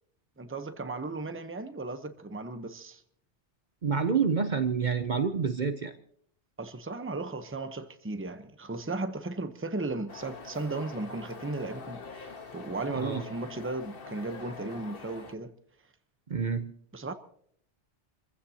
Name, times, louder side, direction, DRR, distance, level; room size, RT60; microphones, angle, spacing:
voice 1, 0.4-3.0 6.6-15.5 16.9-17.1, right 2 dB, 10° right, 0.9 m, -36 dB
voice 2, 3.8-6.0 12.9-13.2 16.3-16.7, right 6 dB, 45° right, 0.8 m, -28 dB
sound 1, 10.1-15.3, left 4 dB, 55° left, 1.4 m, -45 dB
28.0 x 15.5 x 2.9 m
omnidirectional pair, 1.2 m